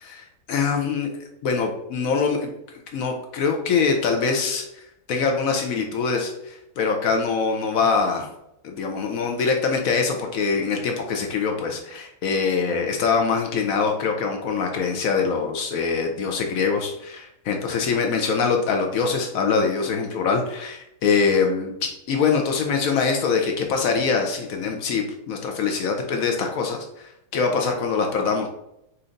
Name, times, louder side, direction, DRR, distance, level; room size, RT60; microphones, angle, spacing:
voice 1, 0.0-1.1 1.4-8.3 8.6-28.5, left 5 dB, 65° left, 3 dB, 1.0 m, -24 dB
4.4 x 2.7 x 3.7 m, 0.80 s
omnidirectional pair, 1.7 m